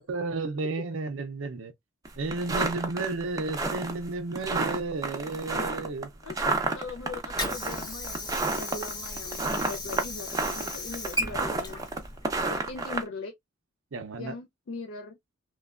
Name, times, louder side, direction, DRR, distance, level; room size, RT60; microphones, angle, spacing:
voice 1, 0.0-1.7 2.2-6.1 13.9-14.3, right 3 dB, 70° right, 0.5 m, -32 dB
sound 1, 2.1-13.0, right 3 dB, 20° right, 0.6 m, -30 dB
voice 2, 6.7-11.8 12.5-13.3 14.2-15.2, left 3 dB, 75° left, 0.4 m, -40 dB
Water / Sink (filling or washing), 6.9-12.9, left 1 dB, 20° left, 0.7 m, -37 dB
3.2 x 2.1 x 2.3 m
head